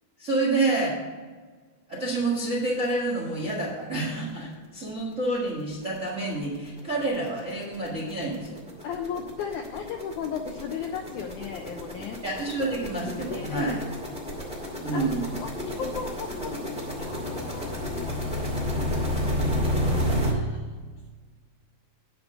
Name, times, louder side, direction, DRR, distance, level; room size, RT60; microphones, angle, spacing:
voice 1, 0.2-1.0 1.9-8.6 12.2-13.8 14.8-15.2, right 2 dB, 45° right, -3 dB, 1.0 m, -28 dB
sound 1, 4.9-5.0 5.4-5.5 5.7-20.3, equal, 5° right, 1.0 m, -31 dB
voice 2, 8.8-12.2 13.3-13.8 14.9-15.1 15.4-15.5 15.8-16.6 17.0-17.9 20.1-20.6, left 7 dB, 90° left, 5 dB, 1.7 m, -35 dB
10.0 x 5.1 x 7.1 m, 1.5 s
omnidirectional pair, 4.2 m